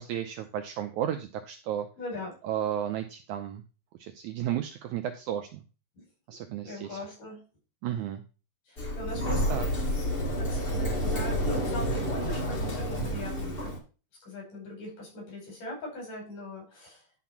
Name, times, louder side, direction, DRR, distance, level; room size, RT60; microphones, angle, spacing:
voice 1, 0.0-1.9 2.4-3.6 4.0-5.6 6.3-7.0 7.8-8.2 9.5-9.7, right 10 dB, 80° right, 6 dB, 1.9 m, -33 dB
voice 2, 2.0-2.3 6.0-6.1 6.6-7.4 8.7-9.9 10.4-13.7 14.2-17.0, left 1 dB, 70° left, -1 dB, 6.6 m, -40 dB
Sliding door, 8.8-13.8, equal, 30° left, 1.0 m, -29 dB
11.0 x 4.2 x 5.8 m, 0.35 s
omnidirectional pair, 3.9 m